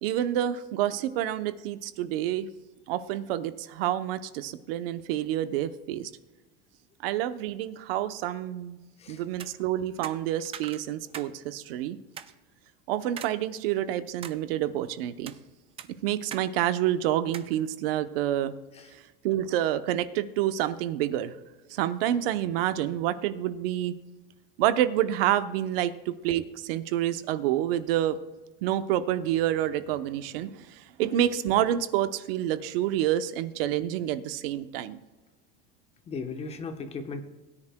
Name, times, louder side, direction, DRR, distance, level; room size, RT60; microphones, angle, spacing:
voice 1, 0.0-2.5 2.9-6.1 7.0-8.8 9.1-12.0 12.9-15.3 16.0-18.5 18.9-21.3 21.7-23.9 24.6-28.2 28.6-35.0, right 12 dB, 75° right, 11 dB, 0.8 m, -28 dB
sound 1, 9.3-9.5 10.0-11.3 11.7-11.8 12.2-12.3 13.2-13.4 13.8-14.4 15.0-15.4 15.8-16.5 16.7-16.8 17.3-17.5, right 9 dB, 20° right, 0.4 m, -41 dB
voice 2, 36.1-37.2, left 4 dB, 20° left, 7 dB, 1.0 m, -36 dB
21.0 x 9.8 x 2.2 m, 1.1 s
supercardioid pair, 155°, 29 cm